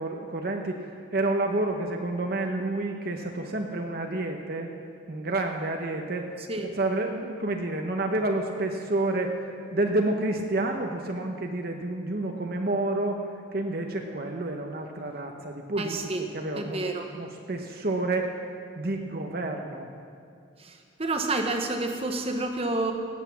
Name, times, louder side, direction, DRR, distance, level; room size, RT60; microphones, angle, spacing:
voice 1, 0.0-4.7 5.1-13.2 13.5-16.8 17.1-18.4 18.8-19.9, right 2 dB, 50° right, 3 dB, 0.9 m, -29 dB
voice 2, 15.8-16.2 16.5-17.0 20.6-20.7 21.0-22.9, right 2 dB, 30° right, 4 dB, 1.1 m, -29 dB
18.0 x 8.3 x 7.2 m, 2.4 s
head